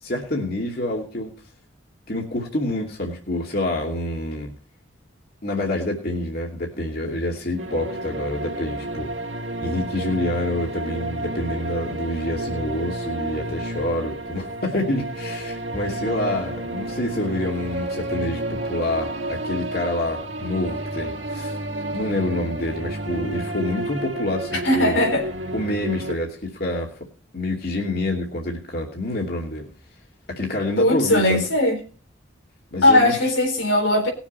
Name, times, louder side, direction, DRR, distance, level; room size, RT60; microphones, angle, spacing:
voice 1, 0.0-1.3 2.1-4.5 5.4-9.1 9.6-21.6 21.9-25.0 25.5-26.9 27.3-29.6 30.3-31.5 32.7-33.1, left 1 dB, 50° left, 2.6 m, -27 dB
sound 1, 7.6-26.2, right 1 dB, 65° right, 2.1 m, -31 dB
voice 2, 24.5-25.3 30.8-31.8 32.8-34.1, left 1 dB, 90° left, 4.0 m, -19 dB
20.0 x 7.2 x 4.3 m
head